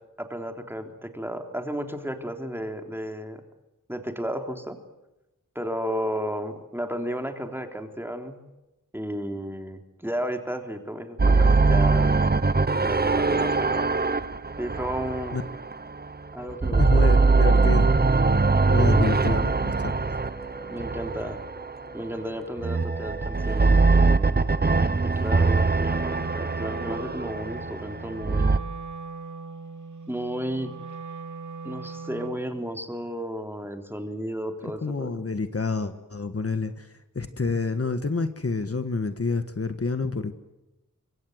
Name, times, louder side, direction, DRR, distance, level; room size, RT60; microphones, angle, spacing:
voice 1, 0.2-3.4 3.9-4.8 5.5-8.4 8.9-12.4 12.8-13.9 14.6-15.4 16.3-17.5 18.8-19.4 20.7-21.4 21.9-24.5 24.8-28.6 30.1-30.8 31.6-35.3, equal, 5° right, 5 dB, 3.4 m, -33 dB
sound 1, 11.2-16.2 16.5-21.8 22.6-28.6, right 3 dB, 30° right, 1.0 m, -22 dB
sound 2, 16.4-23.3, right 4 dB, 15° left, 6.5 m, -42 dB
voice 2, 16.8-17.9 18.7-19.9 34.6-40.3, left 4 dB, 45° left, 9 dB, 1.5 m, -28 dB
Wind instrument woodwind instrument, 25.8-32.5, right 4 dB, 65° right, 3.7 m, -40 dB
26.5 x 23.0 x 8.0 m, 0.98 s
wide cardioid pair, 75°, 32 cm